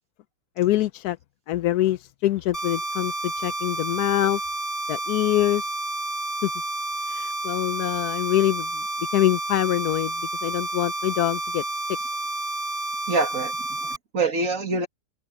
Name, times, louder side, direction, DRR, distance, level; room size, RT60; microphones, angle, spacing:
voice 1, 0.6-1.2 1.5-4.4 4.9-5.7 6.4-6.5 7.1-8.7 9.1-10.1 10.4-11.6, left 14 dB, 80° left, 1.1 m, -24 dB
sound 1, 2.5-14.0, right 2 dB, 20° left, 7.7 m, -30 dB
voice 2, 13.1-13.6 13.8-14.9, right 3 dB, 55° right, 2.5 m, -25 dB
open air
omnidirectional pair, 1.7 m